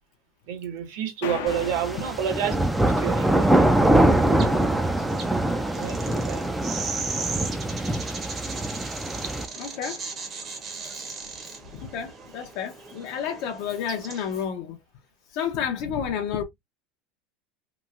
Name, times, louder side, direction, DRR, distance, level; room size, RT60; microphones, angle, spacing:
voice 1, 0.5-4.2 5.7-6.4 7.2-7.3 9.2-9.4 12.4-12.5, right 9 dB, 60° right, 0.9 m, -31 dB
sound 1, 1.2-3.2, left 8 dB, 85° left, 0.7 m, -37 dB
sound 2, 1.4-14.4, right 4 dB, 25° right, 0.7 m, -38 dB
sound 3, 1.5-9.4, right 1 dB, 5° right, 0.3 m, -23 dB
voice 2, 9.6-10.0 11.8-14.8 15.3-16.4, left 8 dB, 50° left, 0.5 m, -30 dB
3.0 x 2.9 x 2.4 m
supercardioid pair, 170°, 0 cm